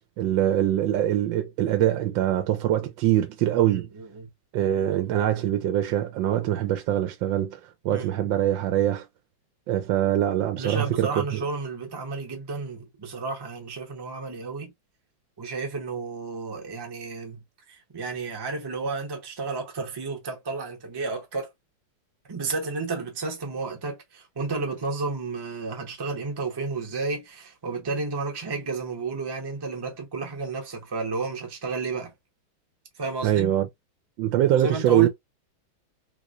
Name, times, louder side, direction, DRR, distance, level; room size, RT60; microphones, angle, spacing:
voice 1, 0.2-3.9 4.5-7.6 7.8-9.1 9.7-11.4 33.2-33.7 34.2-35.1, right 12 dB, 75° right, 1.2 m, -23 dB
voice 2, 3.6-4.3 7.9-8.3 10.6-14.7 15.4-21.5 22.3-32.1 32.9-33.5 34.5-35.1, right 3 dB, 20° right, 0.6 m, -32 dB
3.5 x 3.0 x 2.4 m
omnidirectional pair, 2.2 m